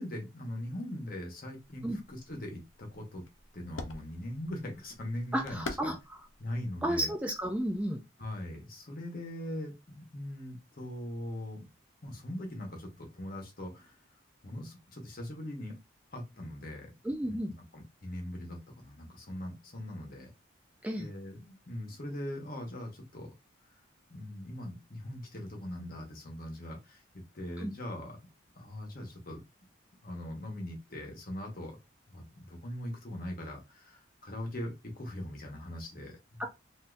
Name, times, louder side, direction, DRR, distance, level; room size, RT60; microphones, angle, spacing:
voice 1, 0.0-3.2 3.5-5.9 6.4-7.1 8.2-11.7 12.0-14.0 14.4-15.8 16.1-16.9 17.2-17.4 17.7-20.3 21.0-23.3 24.1-28.1 28.6-29.4 30.0-31.8 32.1-36.4, left 1 dB, 45° left, 1 dB, 1.0 m, -41 dB
sound 1, 1.6-7.9, left 3 dB, 75° left, 0.6 m, -47 dB
voice 2, 5.3-6.2 6.8-8.0 17.0-17.5 20.8-21.1 27.6-27.7 36.4-36.5, right 1 dB, 5° right, 2 dB, 0.3 m, -32 dB
3.5 x 2.6 x 2.5 m, 0.24 s
head